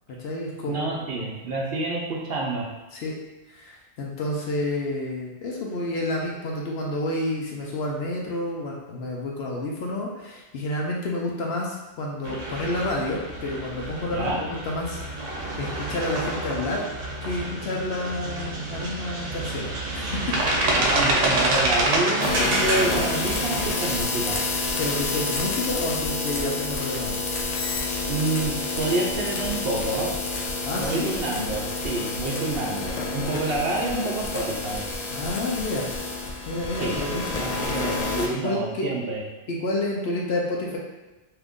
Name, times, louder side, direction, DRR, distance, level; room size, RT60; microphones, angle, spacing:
voice 1, 0.1-1.3 2.9-3.1 3.5-15.0 15.6-16.8 17.2-20.3 24.8-27.2 30.6-31.2 35.1-35.9 36.4-37.3 38.3-38.9 39.5-40.8, left 1 dB, 65° left, -2 dB, 0.8 m, -29 dB
voice 2, 0.7-2.7 14.1-14.4 20.7-24.4 28.0-30.1 30.8-34.8 36.8-37.1 37.4-39.2, right 2 dB, 60° right, -3 dB, 0.8 m, -28 dB
sound 1, 12.2-23.7, right 1 dB, 85° right, 1.0 m, -27 dB
sound 2, 22.2-38.3, left 3 dB, 90° left, 0.3 m, -29 dB
2.8 x 2.5 x 3.6 m, 1.1 s
omnidirectional pair, 1.2 m